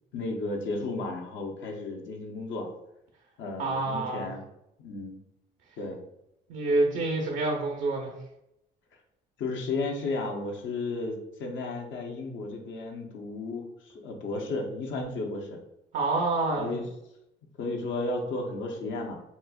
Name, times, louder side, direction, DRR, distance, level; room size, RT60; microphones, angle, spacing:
voice 1, 0.1-2.7 3.4-4.4 4.8-5.2 5.8-6.0 9.4-15.6 16.6-16.9 17.6-19.2, left 3 dB, 70° left, 2 dB, 0.8 m, -33 dB
voice 2, 3.6-4.3 6.5-8.1 15.9-16.7, right 2 dB, 70° right, 0 dB, 0.7 m, -27 dB
4.2 x 2.4 x 2.3 m, 0.83 s
supercardioid pair, 80°, 20 cm